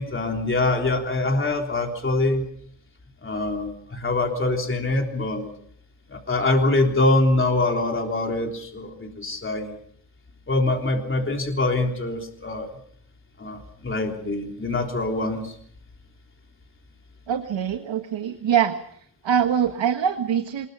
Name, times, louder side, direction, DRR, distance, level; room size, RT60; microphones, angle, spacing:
voice 1, 0.0-2.5 3.2-5.5 6.1-9.8 10.5-12.7 13.4-15.6, left 2 dB, 25° left, 2 dB, 3.5 m, -24 dB
voice 2, 17.3-18.7 19.2-20.7, right 8 dB, 85° right, 6 dB, 1.7 m, -23 dB
26.0 x 21.5 x 5.6 m, 0.65 s
wide cardioid pair, 160°, 44 cm